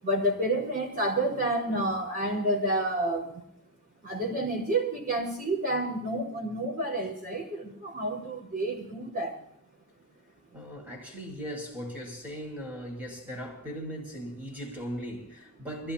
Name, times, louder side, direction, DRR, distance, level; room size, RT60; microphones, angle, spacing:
voice 1, 0.0-3.4 4.0-9.4, right 1 dB, 40° right, 4.8 m, -29 dB
voice 2, 10.5-15.9, equal, 10° right, 4.7 m, -38 dB
23.5 x 15.5 x 2.9 m
head